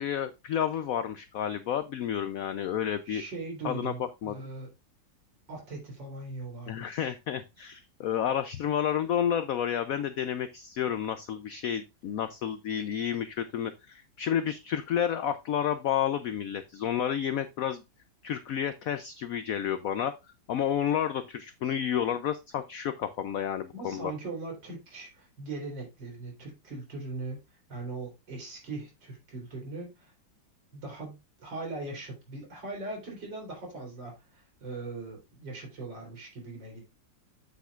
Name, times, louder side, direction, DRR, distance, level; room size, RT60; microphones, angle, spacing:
voice 1, 0.0-3.2 3.6-3.9 4.2-4.3 6.7-17.8 18.2-20.1 20.5-24.1, left 9 dB, 90° left, 11 dB, 0.7 m, -30 dB
voice 2, 3.0-4.7 5.5-7.1 23.7-27.4 27.7-30.1 30.7-36.8, right 3 dB, 70° right, 0 dB, 4.1 m, -40 dB
8.4 x 8.1 x 2.4 m, 0.24 s
omnidirectional pair, 2.1 m